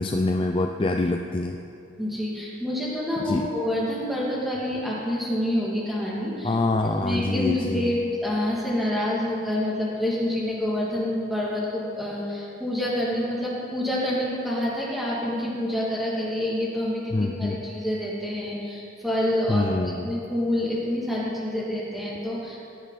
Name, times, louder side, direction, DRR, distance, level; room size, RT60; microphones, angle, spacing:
voice 1, 0.0-1.6 3.2-3.5 6.4-7.9 17.1-17.6 19.5-20.1, left 2 dB, 25° left, 4 dB, 0.4 m, -25 dB
voice 2, 2.0-6.6 6.8-22.6, left 1 dB, ahead, -6 dB, 2.6 m, -27 dB
16.5 x 11.0 x 4.2 m, 2.6 s
head